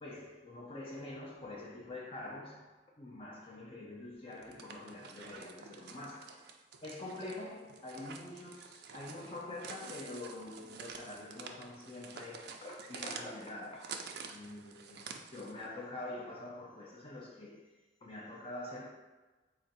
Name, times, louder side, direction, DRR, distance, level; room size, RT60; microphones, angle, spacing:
voice 1, 0.0-2.7 3.0-6.5 6.8-13.9 14.3-17.7 18.0-18.9, left 2 dB, 30° left, -3 dB, 0.5 m, -45 dB
sound 1, 4.3-15.7, right 5 dB, 60° right, 0.4 m, -49 dB
4.3 x 2.6 x 4.1 m, 1.2 s
head